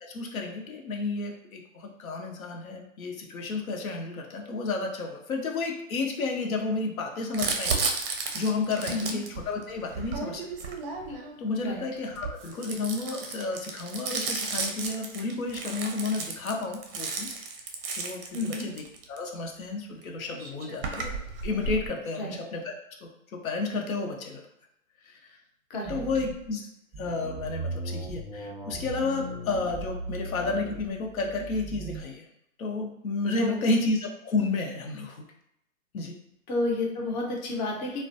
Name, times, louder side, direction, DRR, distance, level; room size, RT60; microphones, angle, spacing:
voice 1, 0.0-10.5 11.1-17.3 18.0-21.1 21.4-22.7 23.0-24.4 25.0-25.4 25.9-26.7 27.0-32.3 32.6-35.2 35.9-36.1, left 3 dB, 85° left, 2 dB, 0.6 m, -32 dB
Crumpling crinkling, 7.3-11.4 12.1-19.2 20.0-20.1 20.3-21.9, right 4 dB, 45° right, 0.4 m, -33 dB
voice 2, 8.9-9.2 11.6-11.8 18.3-18.7 22.2-22.4 25.7-26.0 33.4-33.7 36.5-38.0, left 2 dB, 35° left, -1 dB, 0.5 m, -30 dB
sound 1, 25.9-26.5 26.9-32.0, right 2 dB, 10° right, 0.7 m, -38 dB
2.3 x 2.1 x 2.5 m, 0.80 s
hypercardioid pair, 135°, 41 cm